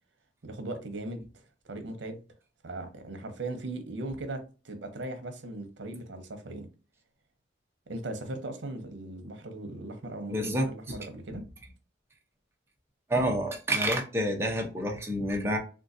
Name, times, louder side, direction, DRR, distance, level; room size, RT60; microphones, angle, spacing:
voice 1, 0.4-1.4 1.7-2.2 2.6-6.7 7.9-11.5, right 2 dB, 80° right, 0.7 m, -38 dB
voice 2, 10.3-11.0 13.1-15.6, right 1 dB, 15° right, 0.6 m, -28 dB
3.8 x 2.3 x 2.6 m
head